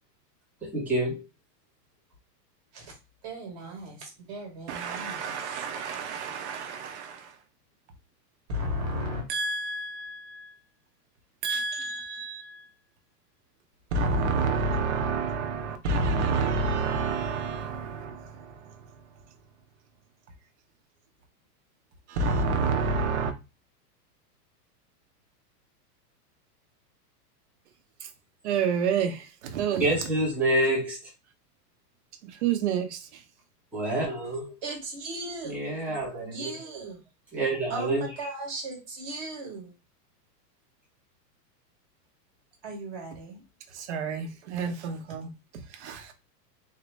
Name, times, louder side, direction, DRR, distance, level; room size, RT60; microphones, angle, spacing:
voice 1, 0.6-1.2 29.8-31.0 33.7-34.5 35.4-36.6 37.3-38.3, right 1 dB, 5° right, 0.6 m, -27 dB
voice 2, 3.2-5.4 8.5-9.2 34.6-35.6 36.2-37.0 37.7-39.7 42.6-43.4, equal, 30° right, 1.1 m, -36 dB
voice 3, 4.7-7.3 9.3-10.5 11.4-12.7 13.9-18.8 22.1-23.3 28.4-29.9 32.2-33.1 43.7-45.3 45.7-46.1, right 4 dB, 45° right, 0.8 m, -29 dB
4.2 x 2.6 x 3.2 m
supercardioid pair, 175°, 49 cm